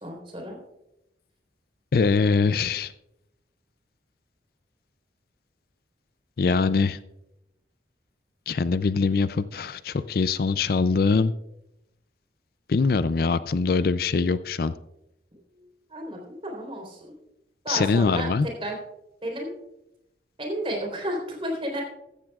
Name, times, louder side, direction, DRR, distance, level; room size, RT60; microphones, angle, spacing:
voice 1, 0.0-0.6 15.9-17.1 17.6-18.8 19.2-19.5 20.4-21.8, right 1 dB, 30° right, 0 dB, 3.7 m, -32 dB
voice 2, 1.9-2.9 6.4-7.0 8.5-11.3 12.7-14.7 17.7-18.5, left 4 dB, 55° left, 14 dB, 0.4 m, -23 dB
15.0 x 14.0 x 2.4 m, 0.87 s
head